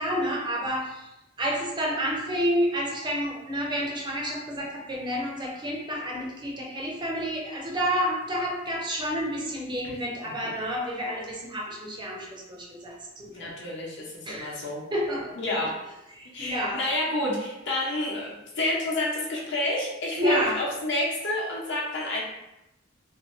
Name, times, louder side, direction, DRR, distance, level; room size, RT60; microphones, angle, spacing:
voice 1, 0.0-13.5 14.2-14.6 14.9-15.4 16.1-16.8 20.1-20.6, equal, 25° right, -2 dB, 0.5 m, -29 dB
voice 2, 13.3-14.8 15.4-15.7 16.3-22.2, left 1 dB, 60° left, -4 dB, 0.8 m, -29 dB
2.6 x 2.2 x 3.1 m, 0.93 s
head